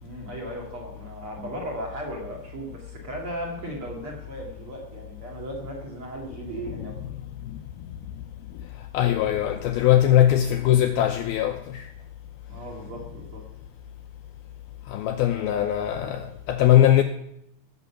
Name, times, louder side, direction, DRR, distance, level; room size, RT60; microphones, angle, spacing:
voice 1, 0.0-7.0 12.4-13.5 15.3-16.4, right 1 dB, 40° right, 2.4 m, -37 dB
voice 2, 8.9-11.9 14.9-17.0, left 12 dB, 85° left, 2.2 m, -21 dB
16.5 x 6.9 x 7.0 m
omnidirectional pair, 5.0 m